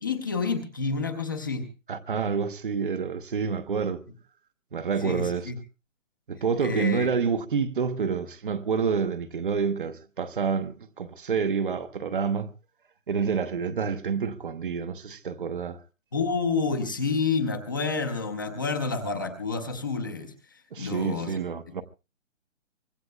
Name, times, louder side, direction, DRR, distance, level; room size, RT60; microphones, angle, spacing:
voice 1, 0.0-1.7 5.0-5.6 6.6-7.1 16.1-21.4, left 4 dB, 15° left, 0.7 m, -29 dB
voice 2, 1.9-4.0 4.7-5.5 6.3-12.5 13.1-15.8 20.7-21.8, right 6 dB, 40° right, 0.8 m, -28 dB
24.5 x 19.5 x 2.2 m
hypercardioid pair, 170°, 38 cm